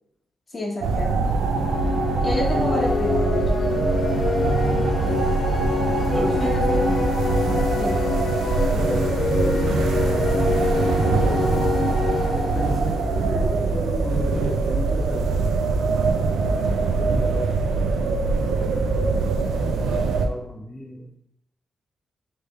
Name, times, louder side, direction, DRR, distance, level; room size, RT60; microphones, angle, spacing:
voice 1, 0.5-1.3 2.2-3.6 4.6-5.2 6.1-7.0 7.7-8.0 16.5-17.3, left 1 dB, 45° left, -2 dB, 1.4 m, -30 dB
sound 1, 0.8-20.3, right 4 dB, 85° right, 0.4 m, -23 dB
sound 2, 1.3-13.9, left 4 dB, 60° left, 0.4 m, -26 dB
voice 2, 6.1-6.7 8.6-11.7 12.3-15.8 16.7-17.6 17.9-21.1, left 1 dB, 15° left, -3 dB, 1.4 m, -35 dB
3.4 x 3.4 x 4.4 m, 0.77 s
supercardioid pair, 45°, 0 cm